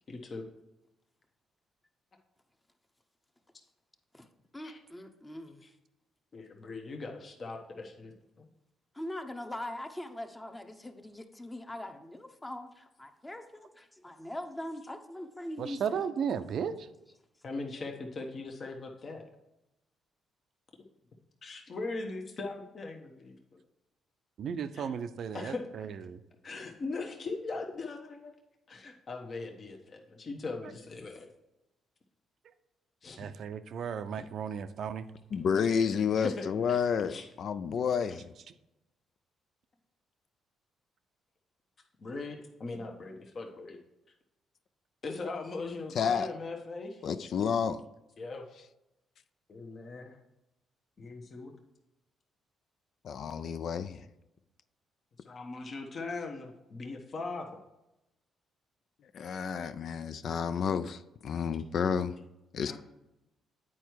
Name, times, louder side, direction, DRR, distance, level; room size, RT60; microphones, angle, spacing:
voice 1, 0.1-0.4 4.6-4.8 6.3-8.5 17.4-19.2 21.4-23.6 24.7-24.9 25.3-25.9 26.4-28.3 28.7-31.3 33.0-33.2 34.2-34.3 36.2-36.8 37.1-37.3 38.1-38.2 42.0-43.8 45.0-47.0 48.2-48.4 49.5-50.2 51.0-51.5 55.2-57.5 62.6-62.8, left 3 dB, 45° left, 2 dB, 1.0 m, -40 dB
voice 2, 4.5-5.7 8.9-16.0, left 1 dB, 15° left, 6 dB, 0.8 m, -42 dB
voice 3, 15.6-16.7 24.4-25.5 26.1-26.2 33.2-35.0, right 7 dB, 65° right, 11 dB, 0.5 m, -34 dB
voice 4, 35.3-38.3 45.9-46.3 47.0-47.8 53.0-54.0 59.1-62.1 62.5-62.8, left 7 dB, 60° left, 12 dB, 0.4 m, -30 dB
8.7 x 4.6 x 4.6 m, 0.92 s
cardioid pair, 90°, 0 cm